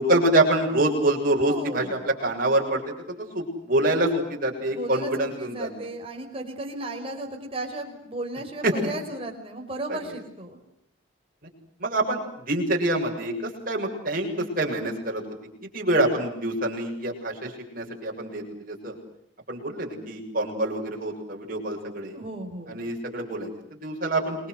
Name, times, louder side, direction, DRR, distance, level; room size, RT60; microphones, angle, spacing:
voice 1, 0.0-5.7 8.6-8.7 11.8-15.2 15.7-19.0 19.5-22.2 22.7-23.5 23.8-24.4, right 1 dB, 45° right, 0 dB, 7.3 m, -26 dB
voice 2, 1.5-2.1 4.6-10.6 22.1-22.8, right 2 dB, 25° right, 3 dB, 5.6 m, -35 dB
28.5 x 22.5 x 8.1 m, 0.74 s
head